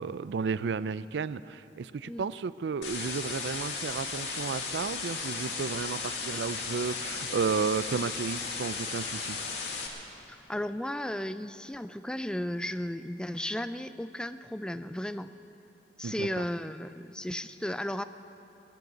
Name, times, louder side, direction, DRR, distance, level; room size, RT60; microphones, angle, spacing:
voice 1, 0.0-9.4 16.0-16.4, right 5 dB, 80° right, 16 dB, 0.4 m, -33 dB
sound 1, 2.8-9.9, left 4 dB, 80° left, 2.1 m, -35 dB
voice 2, 10.5-15.3 16.0-18.0, left 1 dB, 5° left, 12 dB, 0.3 m, -34 dB
17.5 x 10.5 x 7.9 m, 2.8 s
head